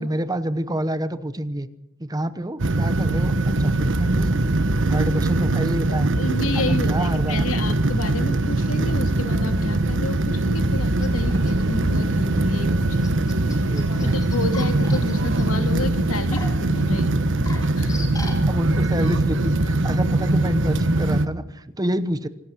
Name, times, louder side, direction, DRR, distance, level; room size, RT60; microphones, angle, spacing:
voice 1, 0.0-1.7 2.0-4.4 4.9-6.1 6.5-7.5 13.7-14.4 18.5-22.3, right 1 dB, 20° right, 13 dB, 1.0 m, -28 dB
sound 1, 2.6-21.3, right 2 dB, 60° right, 1.2 m, -21 dB
voice 2, 5.9-13.2 13.6-17.2 17.8-18.0, left 3 dB, 75° left, 7 dB, 2.4 m, -31 dB
sound 2, 10.9-18.3, left 2 dB, 15° left, 4.4 m, -42 dB
26.0 x 12.0 x 9.7 m, 0.90 s
head